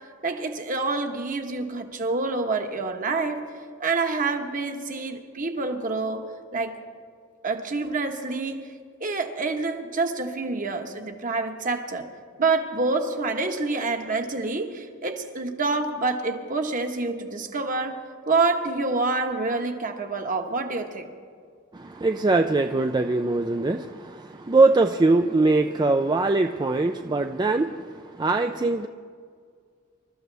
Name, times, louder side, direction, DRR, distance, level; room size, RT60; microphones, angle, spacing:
voice 1, 0.2-3.4 3.8-6.2 6.5-6.7 7.4-8.7 9.0-12.0 12.4-18.0 18.3-21.0, right 3 dB, 40° right, 4 dB, 1.3 m, -27 dB
voice 2, 21.7-28.9, right 3 dB, 20° right, 6 dB, 0.4 m, -22 dB
27.0 x 13.5 x 3.4 m, 2.1 s
head